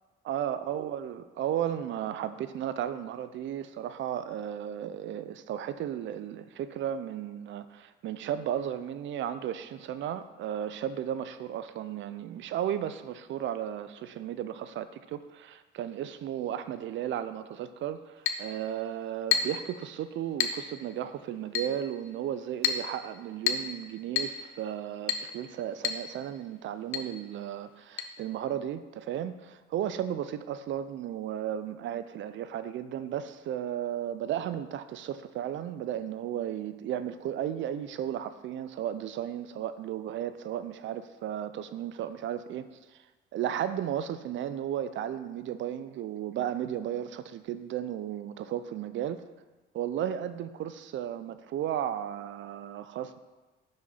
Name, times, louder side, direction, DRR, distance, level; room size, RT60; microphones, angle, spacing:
voice 1, 0.2-43.0 43.3-49.2 49.7-53.2, right 10 dB, 70° right, 12 dB, 0.5 m, -34 dB
Chink clink, 18.3-18.5 19.3-19.6 20.4-20.6 21.6-21.8 22.6-22.9 23.5-23.7 24.2-24.4 25.1-25.3 25.8-26.1 26.3-26.4 26.9-27.1 28.0-28.1, left 8 dB, 85° left, 0.7 m, -29 dB
6.1 x 5.2 x 5.5 m, 1.2 s
cardioid pair, 90°, 20 cm